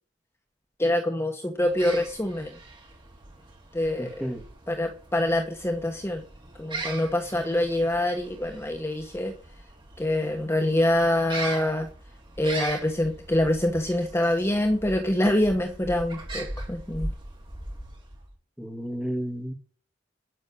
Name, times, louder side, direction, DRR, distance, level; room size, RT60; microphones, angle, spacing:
voice 1, 0.8-2.6 3.7-4.3 4.7-6.2 6.6-9.3 10.0-11.9 12.4-17.1, left 1 dB, 15° left, 1.2 m, -25 dB
sound 1, 1.6-18.3, right 2 dB, 25° right, 4.9 m, -40 dB
voice 2, 4.0-4.4 18.6-19.5, equal, 5° right, 2.0 m, -32 dB
12.5 x 6.4 x 8.5 m
head